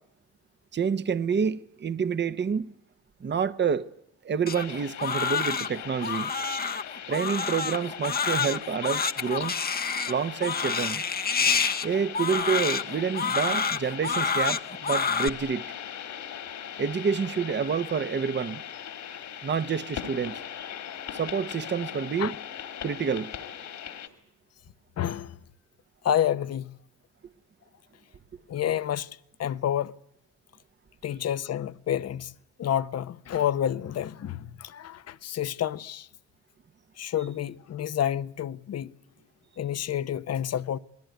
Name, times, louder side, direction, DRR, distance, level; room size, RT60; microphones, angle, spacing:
voice 1, 0.7-2.7 3.2-3.9 4.2-6.3 7.1-9.5 10.1-11.0 11.8-15.7 16.8-18.6 19.4-20.3 21.1-22.4 22.8-23.3, right 6 dB, 35° right, 1.0 m, -28 dB
sound 1, 4.5-24.1, left 9 dB, 70° left, 3.1 m, -40 dB
Crying sobbing, 4.5-15.3, left 5 dB, 30° left, 1.0 m, -28 dB
voice 2, 25.0-25.4 26.0-26.7 28.5-29.1 29.4-29.9 31.0-32.3 32.6-36.1 37.0-38.9 39.6-40.8, left 10 dB, 55° left, 1.0 m, -29 dB
29.0 x 20.0 x 9.3 m
cardioid pair, 90°, 30 cm